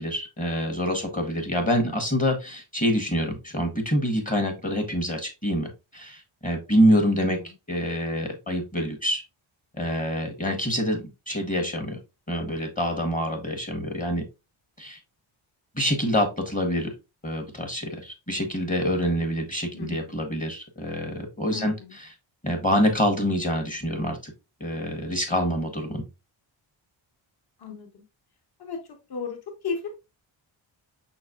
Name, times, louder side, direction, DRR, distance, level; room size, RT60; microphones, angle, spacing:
voice 1, 0.0-7.4 7.7-9.2 9.8-12.0 12.3-14.3 14.8-15.0 15.7-16.9 17.2-22.1 22.4-24.3 24.6-26.0, equal, 15° left, 4 dB, 0.9 m, -26 dB
voice 2, 19.7-20.1 21.5-21.9 27.6-28.0 28.6-29.4 29.6-29.9, left 5 dB, 50° left, 4 dB, 1.2 m, -34 dB
5.9 x 3.9 x 2.3 m, 0.26 s
wide cardioid pair, 145°, 48 cm